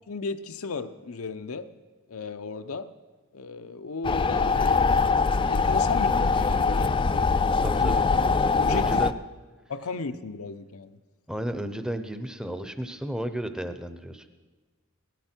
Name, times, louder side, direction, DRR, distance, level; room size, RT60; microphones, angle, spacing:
voice 1, 0.1-1.7 2.1-2.9 3.3-5.0 5.3-7.0 7.7-8.0 8.6-9.0 9.7-11.0, left 4 dB, 80° left, 9 dB, 0.7 m, -35 dB
sound 1, 4.0-9.1, left 4 dB, 25° left, 0.3 m, -23 dB
voice 2, 7.6-8.1 8.7-9.1 11.3-14.3, right 1 dB, 5° right, 9 dB, 0.7 m, -33 dB
18.0 x 13.5 x 4.5 m, 1.3 s
head